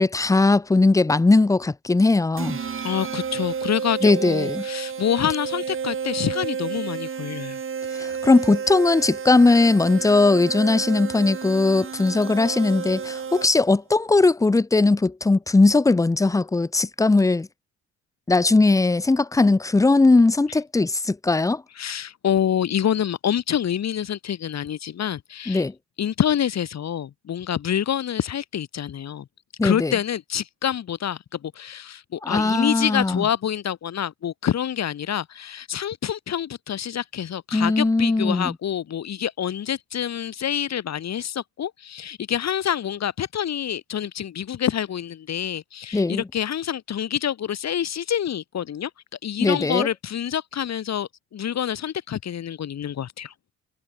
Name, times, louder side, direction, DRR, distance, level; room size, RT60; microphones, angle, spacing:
voice 1, 0.0-2.6 4.0-4.6 8.0-17.5 18.3-21.6 25.5-25.7 29.6-29.9 32.2-33.2 37.5-38.5 45.9-46.2 49.4-49.9, left 3 dB, 10° left, 0.6 m, -19 dB
sound 1, 2.4-13.8, right 6 dB, 45° right, 4.0 m, -31 dB
voice 2, 2.8-7.6 21.8-25.6 26.0-29.3 29.6-48.9 49.2-53.3, left 9 dB, 60° left, 4.2 m, -27 dB
cardioid pair, 90°, 30 cm